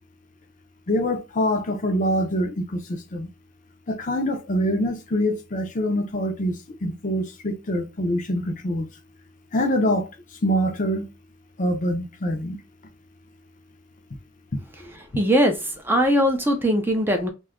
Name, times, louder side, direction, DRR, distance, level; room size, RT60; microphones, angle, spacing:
voice 1, 0.9-3.3 3.9-8.9 9.5-10.1 10.4-11.1 11.6-12.6, equal, 40° left, 0.5 m, -25 dB
voice 2, 14.8-17.3, equal, 10° right, 0.4 m, -21 dB
2.6 x 2.3 x 3.5 m
head